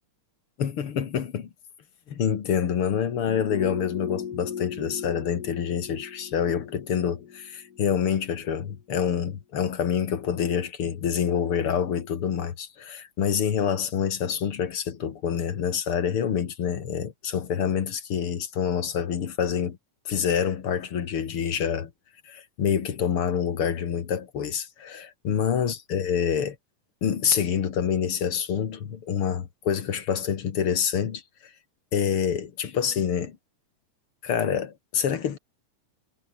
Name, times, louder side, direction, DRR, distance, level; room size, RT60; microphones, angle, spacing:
voice 1, 0.6-1.5 2.1-19.8 20.1-21.9 22.2-26.6 27.0-31.2 31.9-33.4 34.2-35.4, left 8 dB, 50° left, 2.3 m, -27 dB
sound 1, 3.2-8.3 8.6-8.7, left 8 dB, 90° left, 0.8 m, -37 dB
omnidirectional pair, 3.8 m